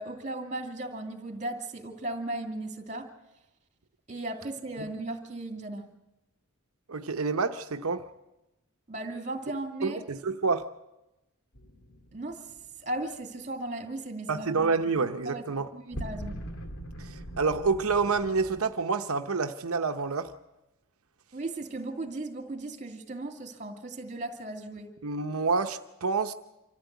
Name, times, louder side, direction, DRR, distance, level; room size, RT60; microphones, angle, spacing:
voice 1, 0.0-3.1 4.1-5.9 8.9-10.0 12.1-12.5 12.8-14.7 15.2-16.3 21.3-24.9, right 2 dB, 35° right, 2.5 m, -36 dB
voice 2, 6.9-8.0 9.8-10.7 14.3-15.7 17.0-20.3 25.0-26.3, right 4 dB, 75° right, 0.8 m, -28 dB
sound 1, 11.5-13.0 15.9-18.6, right 1 dB, 70° left, 1.9 m, -41 dB
25.5 x 14.5 x 8.2 m
head